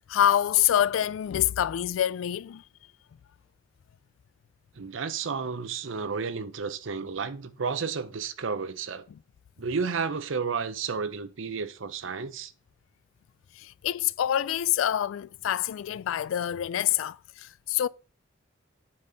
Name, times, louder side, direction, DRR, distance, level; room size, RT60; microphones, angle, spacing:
voice 1, 0.0-2.6 9.1-9.2 13.6-17.9, left 11 dB, 80° left, 0.3 m, -26 dB
voice 2, 4.8-9.1 9.6-12.5, right 5 dB, 70° right, 0.7 m, -32 dB
8.6 x 4.3 x 4.9 m
head